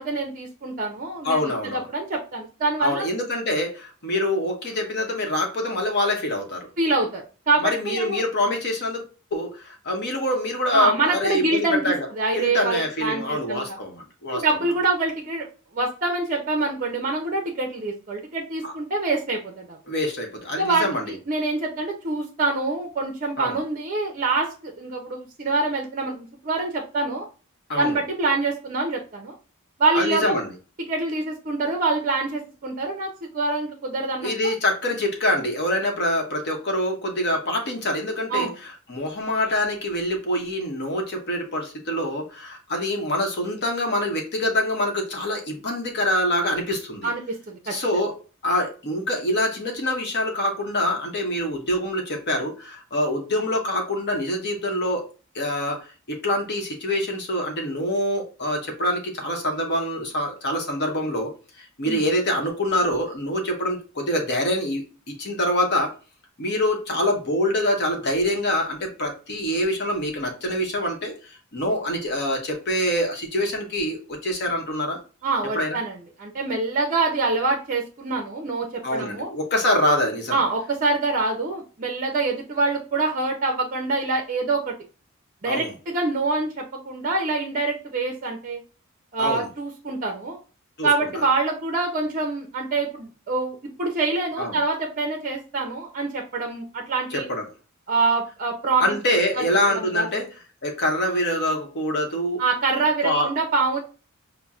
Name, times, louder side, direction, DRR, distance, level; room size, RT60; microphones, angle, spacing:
voice 1, 0.0-3.1 6.8-8.2 10.7-13.8 14.3-15.5 15.7-19.8 20.6-27.3 27.8-29.3 29.8-30.4 30.9-34.3 38.3-38.5 47.0-47.7 61.8-62.0 75.2-79.3 80.3-84.8 85.4-88.6 89.1-90.4 90.8-97.3 97.9-98.9 99.4-99.5 99.7-100.2 102.4-103.8, right 3 dB, 40° right, 2 dB, 0.5 m, -25 dB
voice 2, 1.2-1.9 2.8-6.7 7.6-9.1 9.3-12.1 12.3-14.4 18.6-18.7 19.9-21.1 23.4-23.6 27.7-28.0 29.9-30.5 34.2-47.1 47.7-48.1 48.4-55.0 55.3-61.3 61.6-65.9 66.4-75.0 75.5-75.8 78.8-80.4 85.5-85.7 89.2-89.5 90.8-91.2 94.4-94.6 97.1-97.5 98.8-100.3 100.6-102.4 103.0-103.3, left 1 dB, 50° left, 2 dB, 0.9 m, -25 dB
5.5 x 2.1 x 2.3 m, 0.35 s
head